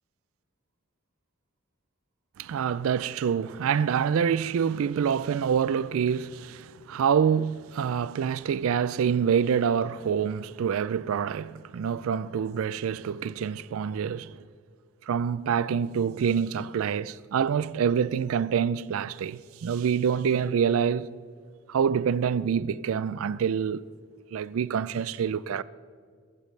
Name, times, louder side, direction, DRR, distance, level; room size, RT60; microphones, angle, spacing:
voice 1, 2.4-14.4 15.0-21.1 21.7-23.8 24.3-25.6, right 7 dB, 70° right, 0.3 m, -26 dB
21.5 x 14.5 x 3.3 m
head